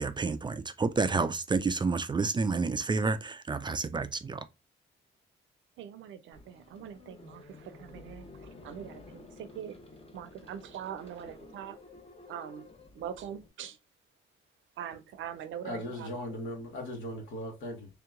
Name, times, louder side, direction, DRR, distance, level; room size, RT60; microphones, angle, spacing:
voice 1, 0.0-4.4, right 4 dB, 25° right, 0.3 m, -29 dB
voice 2, 5.8-9.8 10.1-11.8 12.3-12.7 12.9-13.8 14.8-16.4, right 9 dB, 75° right, 0.6 m, -43 dB
sound 1, 6.3-13.5, left 2 dB, 30° left, 0.9 m, -52 dB
voice 3, 15.6-17.9, left 1 dB, 75° left, 1.7 m, -38 dB
3.3 x 2.9 x 3.6 m
cardioid pair, 90°, 20 cm